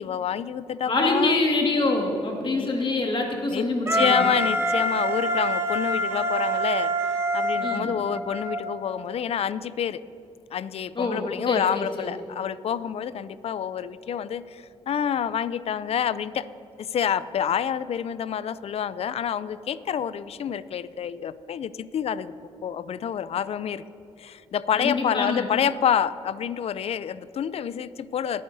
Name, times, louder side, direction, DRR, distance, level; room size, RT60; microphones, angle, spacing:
voice 1, 0.0-1.4 2.5-2.7 3.5-3.7 3.9-6.9 7.3-10.0 10.5-16.5 16.8-22.3 22.6-23.8 24.2-28.4, left 8 dB, 60° left, 16 dB, 0.4 m, -28 dB
voice 2, 0.9-4.3 7.6-7.9 11.0-12.1 24.8-25.5, left 2 dB, 45° left, 1 dB, 1.9 m, -26 dB
Wind instrument woodwind instrument, 3.9-8.6, right 1 dB, 20° right, 1.4 m, -25 dB
21.5 x 8.6 x 2.7 m, 2.7 s
cardioid pair, 60°, 12 cm